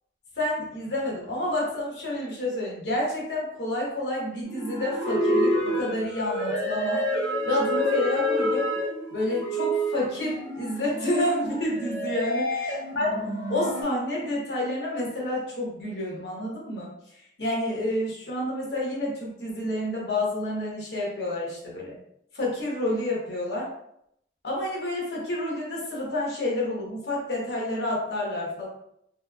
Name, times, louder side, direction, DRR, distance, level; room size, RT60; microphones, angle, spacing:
voice 1, 0.4-7.0 7.5-8.7 9.1-22.0 22.3-23.7 24.4-28.7, left 1 dB, 75° left, -3 dB, 1.1 m, -29 dB
sound 1, 4.5-13.8, equal, 85° right, 0.8 m, -28 dB
2.9 x 2.9 x 2.3 m, 0.76 s
head